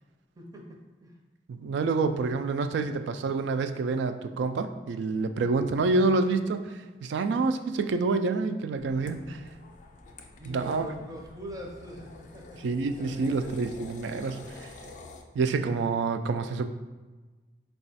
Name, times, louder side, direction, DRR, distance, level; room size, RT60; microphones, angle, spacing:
voice 1, 0.4-0.7 1.0-1.1 10.4-12.1 12.3-12.6 13.0-13.7, equal, 20° right, 0 dB, 0.5 m, -42 dB
voice 2, 1.5-9.4 10.4-10.9 12.6-14.7 15.4-16.7, right 3 dB, 75° right, 8 dB, 0.3 m, -28 dB
sound 1, 8.8-15.2, left 3 dB, 45° left, 0.4 m, -48 dB
4.1 x 2.3 x 4.0 m, 1.3 s
head